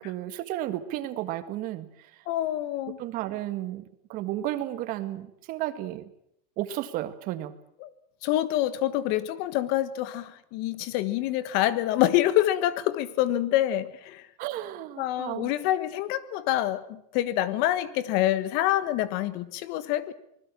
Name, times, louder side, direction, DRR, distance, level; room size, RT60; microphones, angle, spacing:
voice 1, 0.0-1.9 3.0-3.8 4.1-6.1 6.6-7.5 14.4-15.5, right 14 dB, 40° right, 1.9 m, -33 dB
voice 2, 2.3-3.0 7.8-7.9 8.2-14.3 15.0-20.1, left 13 dB, 50° left, 1.5 m, -26 dB
26.0 x 20.5 x 7.5 m
supercardioid pair, 160°, 21 cm